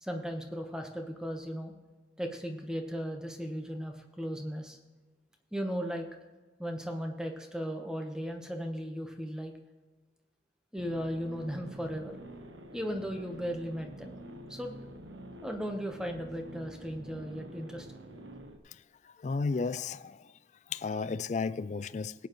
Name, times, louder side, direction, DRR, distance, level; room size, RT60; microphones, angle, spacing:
voice 1, 0.0-1.7 2.2-4.8 5.5-6.1 6.6-9.5 10.7-12.2 12.7-14.2 14.5-14.8 15.4-17.9, equal, 5° right, 1.0 m, -36 dB
sound 1, 10.8-18.6, right 1 dB, 85° right, 1.0 m, -47 dB
voice 2, 19.2-20.2 20.7-22.3, left 4 dB, 40° left, 0.3 m, -33 dB
18.5 x 8.9 x 3.1 m
head